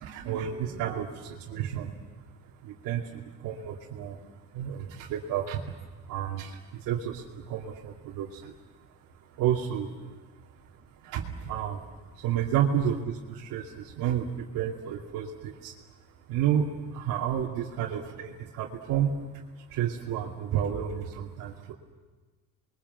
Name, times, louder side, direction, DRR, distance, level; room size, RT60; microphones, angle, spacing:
voice 1, 0.0-2.1 2.6-4.2 4.5-5.8 6.1-8.5 9.4-9.9 11.0-11.8 12.2-15.7 16.3-19.1 19.7-21.7, right 9 dB, 90° right, -3 dB, 2.8 m, -31 dB
29.0 x 22.5 x 8.1 m, 1.3 s
cardioid pair, 140°, 33 cm